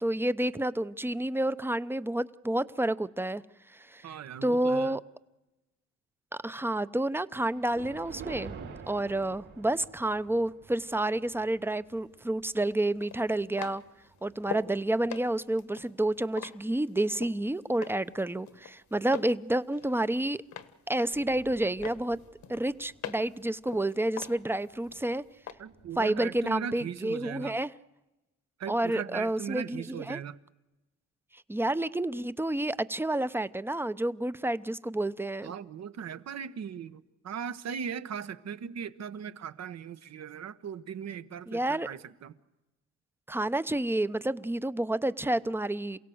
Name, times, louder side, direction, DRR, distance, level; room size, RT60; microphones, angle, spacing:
voice 1, 0.0-3.4 3.7-4.1 4.4-5.0 6.4-8.6 8.9-13.8 14.2-20.4 20.9-22.2 22.5-25.2 26.0-27.7 28.7-30.2 31.5-35.5 41.5-41.9 43.3-46.0, right 1 dB, 5° right, 0.7 m, -29 dB
voice 2, 4.0-5.0 25.6-27.6 28.6-30.4 35.4-42.3, right 7 dB, 60° right, 1.2 m, -39 dB
Thunder, 7.4-15.9 16.4-16.7 17.4-17.5 17.8-17.9 20.1-20.3 20.6-20.7 20.9-26.9, right 5 dB, 80° right, 4.6 m, -51 dB
sound 1, 12.0-12.1 13.0-14.7 15.1-17.4 17.8-18.2 18.5-19.4 19.7-20.8 21.2-21.5 21.8-23.4 23.7-25.0 25.5-25.6, left 9 dB, 65° left, 1.5 m, -42 dB
28.0 x 17.0 x 7.9 m
cardioid pair, 90°, 30 cm